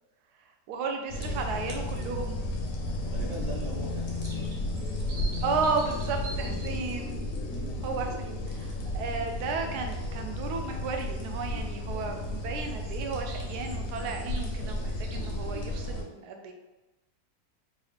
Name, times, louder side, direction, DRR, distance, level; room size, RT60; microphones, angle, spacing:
voice 1, 0.4-2.4 5.4-7.2 7.8-16.5, right 4 dB, 75° right, 3 dB, 1.1 m, -34 dB
sound 1, 1.1-16.0, left 1 dB, 60° left, 1.0 m, -33 dB
sound 2, 1.8-14.6, left 3 dB, 85° left, 1.3 m, -48 dB
voice 2, 3.1-4.6 7.5-7.8, right 3 dB, 40° right, -5 dB, 0.7 m, -40 dB
sound 3, 3.9-6.7 12.6-15.4, right 2 dB, 90° right, 1.4 m, -46 dB
4.0 x 2.4 x 3.3 m, 1.1 s
omnidirectional pair, 1.8 m